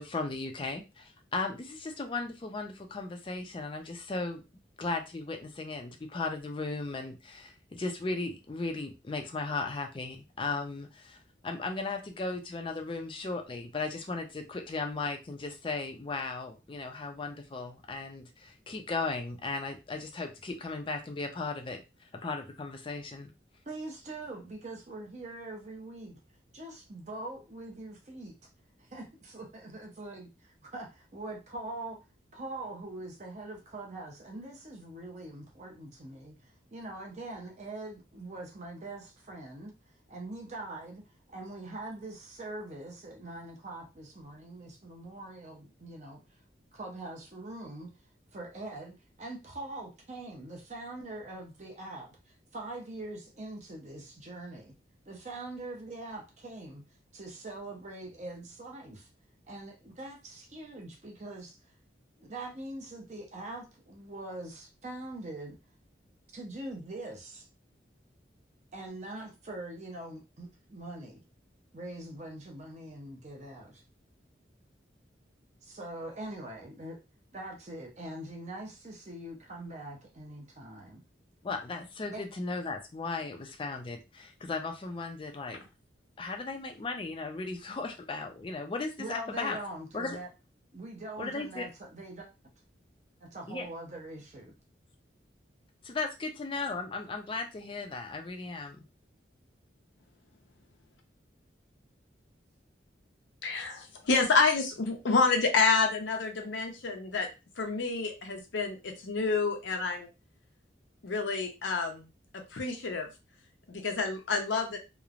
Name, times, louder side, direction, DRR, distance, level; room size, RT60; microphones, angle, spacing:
voice 1, 0.0-4.4 4.8-11.2 11.4-21.8 22.2-23.3 81.4-85.6 86.2-89.6 89.9-90.2 91.2-91.7 93.5-93.7 95.8-98.8, left 3 dB, 30° left, 0.4 m, -36 dB
voice 2, 23.7-26.2 26.5-28.3 28.8-32.0 32.3-39.7 40.1-46.2 46.7-47.9 48.3-54.7 55.1-56.8 57.1-59.1 59.5-61.6 62.2-65.6 66.3-67.5 68.7-71.2 71.7-73.8 75.6-77.0 77.3-81.0 82.1-82.2 89.0-90.3 90.7-92.3 93.2-94.5, right 2 dB, 40° right, 0.7 m, -43 dB
voice 3, 103.4-107.3 107.6-110.1 111.0-112.1 112.5-113.1 113.7-114.8, left 4 dB, 85° left, 0.7 m, -28 dB
3.1 x 2.0 x 2.4 m
head